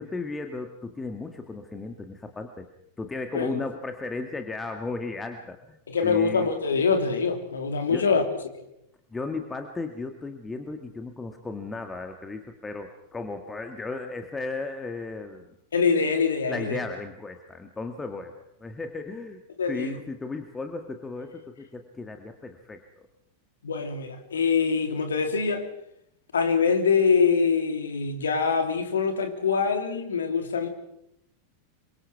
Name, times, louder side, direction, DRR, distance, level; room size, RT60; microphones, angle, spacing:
voice 1, 0.0-2.7 3.0-5.8 6.0-6.5 7.9-8.1 9.1-15.5 16.5-18.3 18.6-19.4 19.7-23.1, left 3 dB, 10° left, 6 dB, 1.9 m, -35 dB
voice 2, 5.9-8.2 15.7-16.8 19.6-20.0 23.6-25.7 26.3-30.7, left 5 dB, 70° left, 5 dB, 3.1 m, -24 dB
27.5 x 24.5 x 4.8 m, 0.77 s
figure-of-eight pair, 90°, 0 cm